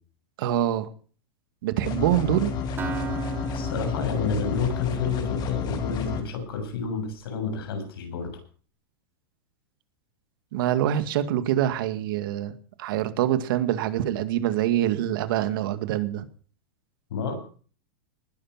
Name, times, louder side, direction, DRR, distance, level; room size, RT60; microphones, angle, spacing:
voice 1, 0.4-0.9 1.6-2.5 10.5-16.3, right 12 dB, 65° right, 11 dB, 2.2 m, -25 dB
sound 1, 1.8-6.2, left 5 dB, 35° left, 3.9 m, -31 dB
Acoustic guitar, 2.8-6.6, right 5 dB, 20° right, 3.4 m, -38 dB
voice 2, 3.5-8.3 17.1-17.4, left 5 dB, 85° left, 6 dB, 7.7 m, -30 dB
20.0 x 10.5 x 5.9 m, 0.42 s
supercardioid pair, 135°, 12 cm